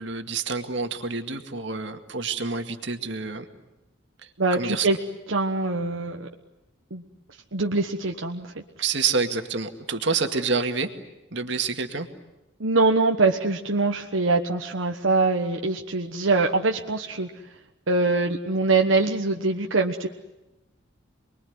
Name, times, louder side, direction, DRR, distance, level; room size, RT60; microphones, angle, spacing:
voice 1, 0.0-3.5 4.6-4.9 8.8-10.9 11.3-12.1, right 4 dB, 65° right, 6 dB, 2.1 m, -27 dB
voice 2, 4.4-5.0 5.3-6.3 6.9-7.0 7.5-8.6 12.6-17.3 17.9-20.1, right 3 dB, 80° right, 3 dB, 1.3 m, -23 dB
28.5 x 22.0 x 9.5 m, 1.0 s
head